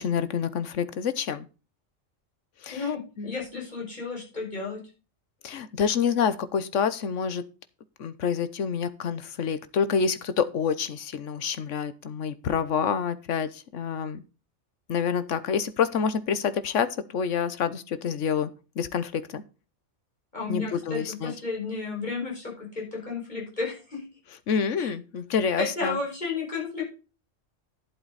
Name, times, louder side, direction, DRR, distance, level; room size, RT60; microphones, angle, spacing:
voice 1, 0.0-1.5 2.6-2.8 3.2-3.4 5.4-7.4 8.0-14.2 14.9-18.5 18.8-19.4 20.5-21.3 24.5-26.0, left 6 dB, 80° left, 13 dB, 1.3 m, -27 dB
voice 2, 2.7-4.8 20.3-24.0 24.8-24.9 25.6-26.9, left 4 dB, 35° left, -4 dB, 5.8 m, -32 dB
11.5 x 7.9 x 4.0 m, 0.33 s
omnidirectional pair, 1.3 m